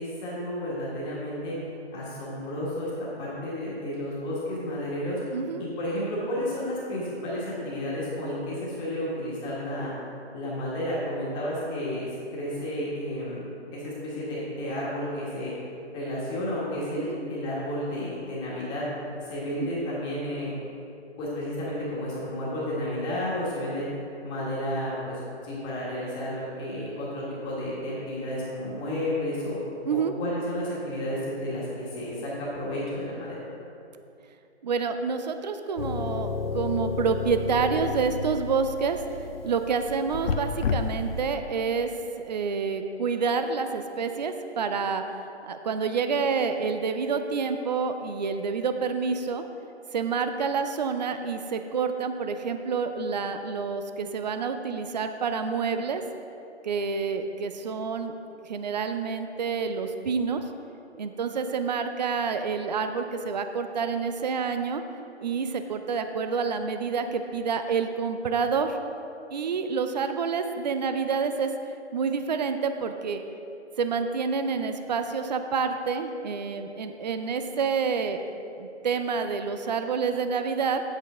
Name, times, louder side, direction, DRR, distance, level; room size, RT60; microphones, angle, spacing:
voice 1, 0.0-1.5 1.9-5.2 5.6-9.9 10.3-13.5 13.7-15.5 15.9-18.9 19.2-20.5 21.2-23.9 24.2-29.6 29.9-33.4, left 1 dB, 15° left, -6 dB, 1.6 m, -32 dB
voice 2, 5.3-5.7 17.0-17.2 19.6-19.7 29.9-30.1 34.6-39.0 39.4-41.9 42.2-45.0 45.4-49.4 49.9-56.0 56.6-58.1 58.4-60.4 61.0-64.8 65.2-68.8 69.3-71.5 71.9-73.2 73.8-78.2 78.6-80.8, right 5 dB, 40° right, 8 dB, 0.5 m, -28 dB
sound 1, 35.8-41.3, left 5 dB, 60° left, 0.6 m, -31 dB
9.0 x 8.1 x 3.7 m, 2.7 s
figure-of-eight pair, 145°, 34 cm